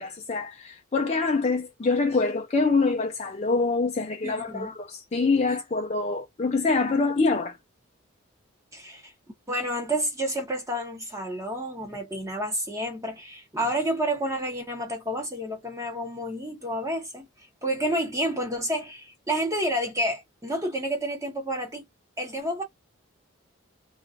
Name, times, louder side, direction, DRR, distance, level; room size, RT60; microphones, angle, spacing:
voice 1, 0.0-7.6, left 3 dB, 30° left, 0.4 m, -25 dB
voice 2, 4.2-4.7 8.7-9.1 9.5-17.3 17.6-21.9 22.2-22.6, right 1 dB, 15° right, 0.9 m, -30 dB
2.4 x 2.3 x 2.5 m
head